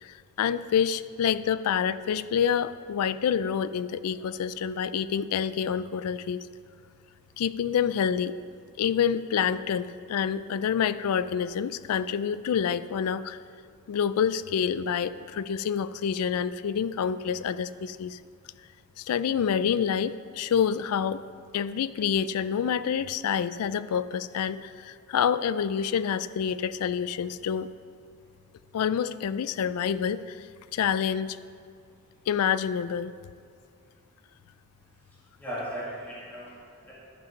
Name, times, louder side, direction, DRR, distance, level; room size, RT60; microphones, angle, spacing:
voice 1, 0.0-6.5 7.4-8.3 8.8-13.4 13.9-18.2 19.0-21.2 21.5-27.7 28.7-30.5 30.7-31.4 32.3-33.1, left 7 dB, 80° left, 15 dB, 0.3 m, -27 dB
voice 2, 35.1-36.9, equal, 10° left, -8 dB, 1.8 m, -38 dB
11.5 x 5.8 x 5.5 m, 2.4 s
head